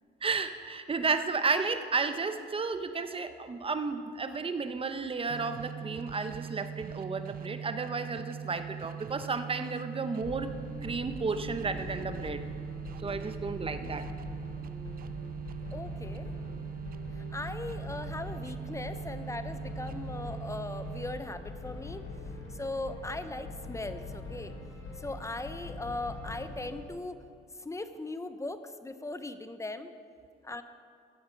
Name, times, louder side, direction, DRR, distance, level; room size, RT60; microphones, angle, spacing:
voice 1, 0.2-10.5 10.8-12.4 13.0-14.1, right 4 dB, 30° right, 9 dB, 0.8 m, -32 dB
sound 1, 5.3-21.4, right 8 dB, 50° right, 0.4 m, -41 dB
sound 2, 10.2-26.8, left 2 dB, 85° left, 3.0 m, -43 dB
voice 2, 15.7-16.3 17.1-22.0 22.5-24.5 25.0-27.2 27.6-29.9 30.5-30.6, left 2 dB, 15° left, 11 dB, 0.6 m, -39 dB
14.0 x 7.9 x 5.1 m, 2.4 s
cardioid pair, 90°, 20 cm